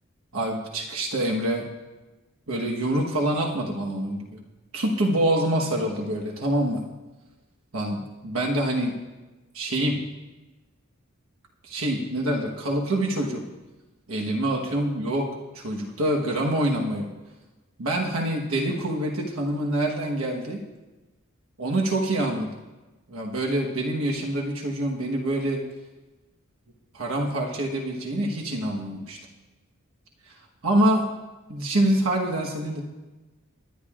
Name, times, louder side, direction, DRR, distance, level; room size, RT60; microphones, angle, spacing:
voice 1, 0.3-1.6 2.5-4.4 4.7-6.8 7.7-8.9 9.5-10.0 11.6-13.4 14.1-15.3 15.5-17.1 17.8-20.6 21.6-22.5 23.1-25.6 26.9-29.2 30.6-31.1 31.5-32.8, right 1 dB, 85° right, 0 dB, 1.3 m, -26 dB
19.0 x 10.5 x 2.5 m, 1.1 s
head